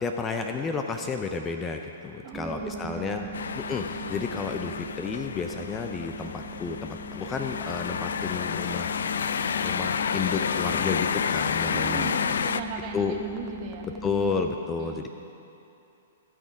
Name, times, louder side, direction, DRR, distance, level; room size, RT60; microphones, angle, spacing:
voice 1, 0.0-3.2 3.6-9.0 9.6-12.1 12.9-13.1 14.0-15.1, left 4 dB, 20° left, 4 dB, 0.6 m, -31 dB
voice 2, 2.2-3.4 11.7-13.9 14.7-15.1, right 5 dB, 35° right, 2 dB, 1.4 m, -38 dB
sound 1, 2.3-14.6, equal, 20° right, 0.9 m, -42 dB
sound 2, 3.3-12.6, left 6 dB, 70° left, 0.4 m, -30 dB
16.0 x 6.3 x 5.2 m, 2.8 s
hypercardioid pair, 120°, 0 cm